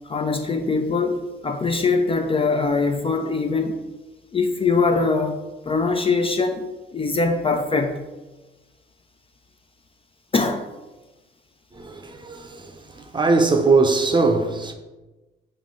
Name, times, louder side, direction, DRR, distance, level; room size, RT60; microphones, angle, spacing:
voice 1, 0.0-3.8 4.3-5.4 5.7-6.7 6.9-8.0 10.3-10.7, left 4 dB, 30° left, 0.4 m, -22 dB
voice 2, 11.7-14.7, right 3 dB, 25° right, 0.6 m, -21 dB
5.5 x 2.6 x 3.7 m
cardioid pair, 90°, 20 cm